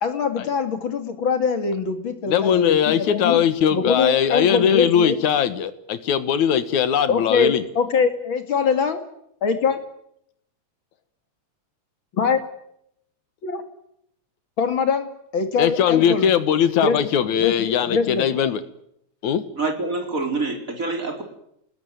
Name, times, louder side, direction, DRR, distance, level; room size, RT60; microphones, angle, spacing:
voice 1, 0.0-3.4 3.7-5.2 7.1-9.0 9.4-9.8 12.1-12.4 13.4-13.6 14.6-16.3 16.8-17.0 17.4-18.3, left 5 dB, 45° left, 7 dB, 2.9 m, -23 dB
voice 2, 2.3-7.6 15.6-18.6 19.2-19.4, left 8 dB, 75° left, 12 dB, 2.8 m, -20 dB
voice 3, 19.5-21.2, right 3 dB, 25° right, 3 dB, 4.5 m, -26 dB
27.5 x 20.0 x 9.2 m, 0.78 s
omnidirectional pair, 3.4 m